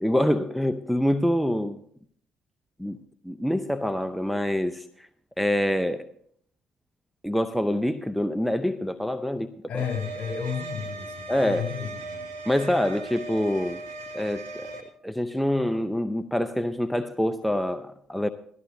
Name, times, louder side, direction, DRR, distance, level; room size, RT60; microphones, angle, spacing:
voice 1, 0.0-1.8 2.8-3.0 3.2-4.8 5.4-6.1 7.2-9.5 9.7-9.8 11.3-11.6 12.5-13.8 14.1-18.3, left 1 dB, ahead, 0.6 m, -26 dB
voice 2, 9.7-12.3, left 7 dB, 50° left, 3.5 m, -33 dB
sound 1, 9.8-14.8, right 3 dB, 85° right, 1.7 m, -38 dB
17.0 x 13.5 x 2.7 m
hypercardioid pair, 55°, 3 cm